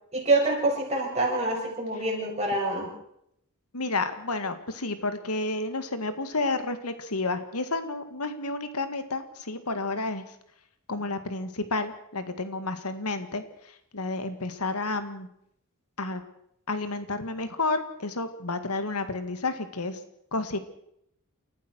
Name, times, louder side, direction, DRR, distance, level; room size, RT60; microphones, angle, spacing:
voice 1, 0.1-2.9, right 2 dB, 30° right, -2 dB, 8.0 m, -26 dB
voice 2, 3.7-10.2 10.9-13.4 13.9-15.3 16.0-16.2 16.7-20.0 20.3-20.6, left 3 dB, 80° left, 10 dB, 2.0 m, -30 dB
29.5 x 14.0 x 6.4 m, 0.74 s
head